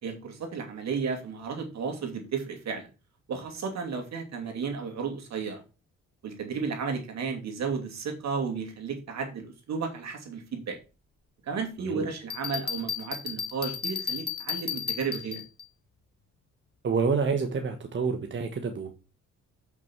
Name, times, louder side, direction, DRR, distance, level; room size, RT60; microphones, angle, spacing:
voice 1, 0.0-2.9 3.3-5.6 6.2-10.8 11.5-15.4, right 5 dB, 60° right, 2.6 m, -33 dB
Bell, 12.3-15.6, left 7 dB, 35° left, 1.3 m, -34 dB
voice 2, 16.8-18.9, right 5 dB, 40° right, 1.3 m, -28 dB
7.9 x 6.0 x 4.6 m
cardioid pair, 90°, 30 cm